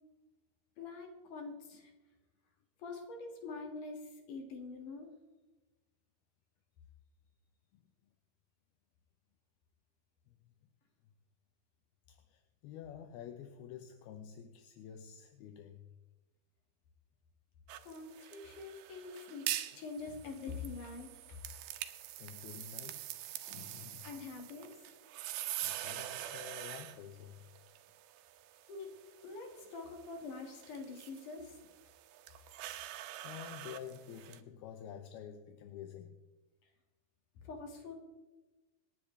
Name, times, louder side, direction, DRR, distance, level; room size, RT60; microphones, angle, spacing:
voice 1, 0.8-1.9 2.8-5.1 17.8-21.4 24.0-24.8 28.7-28.9 29.2-31.6 37.4-38.0, left 4 dB, 55° left, 3 dB, 3.3 m, -45 dB
voice 2, 12.1-15.9 22.2-23.1 23.5-24.1 25.6-27.5 32.6-33.0 33.2-36.2, left 9 dB, 80° left, 7 dB, 2.8 m, -49 dB
sound 1, 17.7-34.4, right 13 dB, 75° right, 2.5 m, -45 dB
26.5 x 10.0 x 3.3 m, 1.2 s
omnidirectional pair, 4.6 m